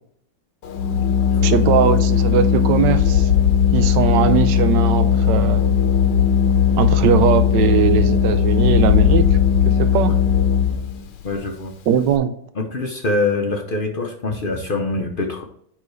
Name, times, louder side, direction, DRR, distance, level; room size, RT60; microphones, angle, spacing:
Organ, 0.7-11.0, left 8 dB, 85° left, 1.5 m, -17 dB
voice 1, 1.4-3.3 3.7-5.9 6.8-9.3 9.7-10.1 11.9-12.3, right 8 dB, 90° right, 11 dB, 1.3 m, -20 dB
voice 2, 11.2-11.7 12.6-15.4, left 2 dB, 55° left, 3 dB, 0.6 m, -24 dB
7.4 x 5.5 x 3.2 m, 0.67 s
omnidirectional pair, 1.9 m